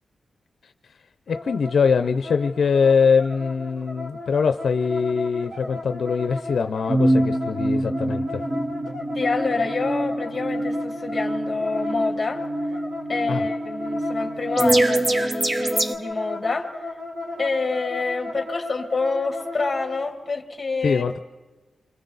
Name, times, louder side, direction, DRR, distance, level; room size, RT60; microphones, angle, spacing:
voice 1, 1.3-8.4 13.3-13.4 20.8-21.2, left 5 dB, 65° left, 8 dB, 0.6 m, -22 dB
sound 1, 1.3-19.9, left 3 dB, 50° right, 6.0 m, -35 dB
sound 2, 6.9-15.9, right 1 dB, 25° right, 1.0 m, -25 dB
voice 2, 9.1-12.4 13.1-16.9 17.4-21.1, left 3 dB, 25° left, 4 dB, 2.4 m, -27 dB
29.0 x 26.0 x 4.0 m, 1.3 s
wide cardioid pair, 150°, 0 cm